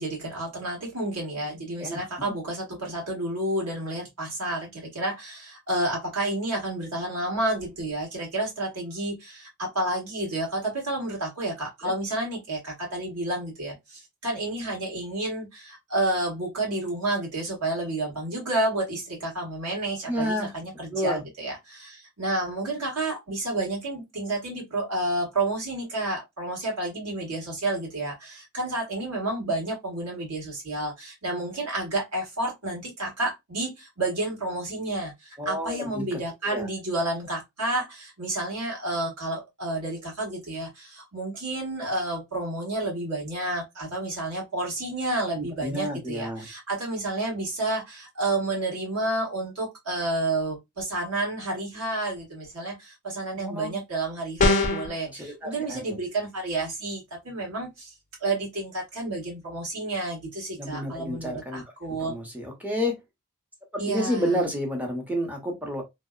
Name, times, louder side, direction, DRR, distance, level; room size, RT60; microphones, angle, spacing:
voice 1, 0.0-57.9 58.2-62.1 63.8-64.5, right 2 dB, 85° right, 1.6 m, -30 dB
voice 2, 1.8-2.3 20.1-20.5 20.9-21.2 35.4-36.7 45.4-46.5 53.4-53.8 55.1-56.0 60.6-61.6 62.0-62.9 63.9-65.8, equal, 5° right, 0.7 m, -30 dB
sound 1, 54.4-54.9, left 2 dB, 35° left, 0.4 m, -21 dB
2.8 x 2.0 x 2.3 m
head